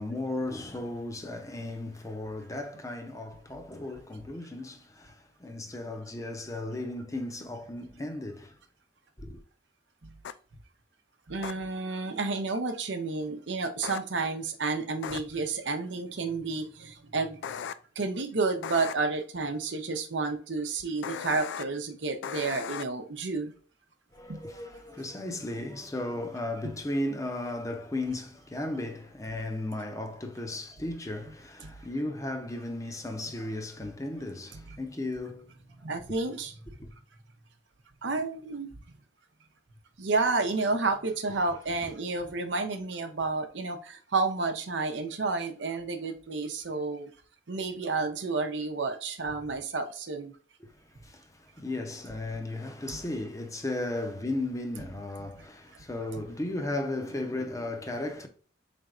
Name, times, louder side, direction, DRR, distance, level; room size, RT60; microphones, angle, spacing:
voice 1, 0.0-8.6 9.2-9.4 24.1-35.5 41.8-41.9 50.6-50.7 51.0-58.3, left 2 dB, 20° left, 0.6 m, -35 dB
sound 1, 10.2-10.3 11.4-11.5 13.8-14.0 15.0-15.2 17.4-17.7 18.6-18.9 21.0-21.6 22.2-22.8, left 8 dB, 85° left, 0.3 m, -36 dB
voice 2, 11.3-17.4 18.0-23.5 24.3-24.4 26.6-26.7 31.6-31.7 34.5-34.8 35.8-36.5 38.0-38.7 40.0-47.1 47.5-50.3 52.9-53.0 55.3-55.4, right 3 dB, 90° right, 0.7 m, -31 dB
4.2 x 3.4 x 2.4 m
head